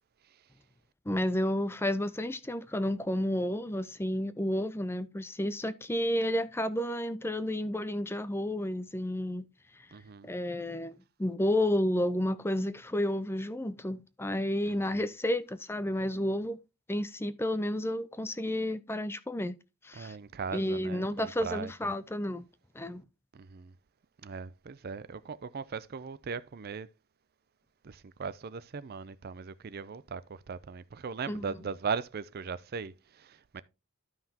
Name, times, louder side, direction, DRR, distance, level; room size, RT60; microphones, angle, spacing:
voice 1, 1.1-9.5 10.2-16.6 16.9-19.6 19.8-20.2 20.5-22.5 22.7-23.0 31.3-31.4, left 1 dB, 10° left, 0.5 m, -31 dB
voice 2, 9.9-10.3 14.7-15.0 19.9-21.9 23.3-23.7 24.2-26.9 27.8-33.6, right 5 dB, 45° right, 0.4 m, -39 dB
12.5 x 5.7 x 2.8 m
head